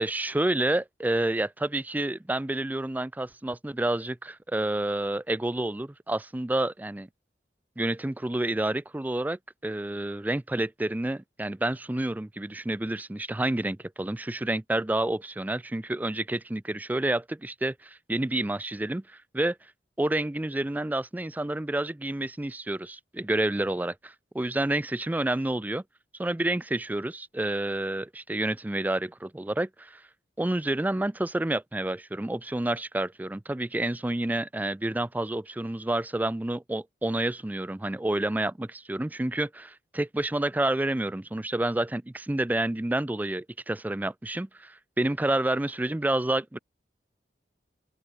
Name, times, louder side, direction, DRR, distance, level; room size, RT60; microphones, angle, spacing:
voice 1, 0.0-7.1 7.8-19.6 20.0-25.8 26.2-30.0 30.4-46.6, right 1 dB, 10° right, 0.4 m, -29 dB
open air
head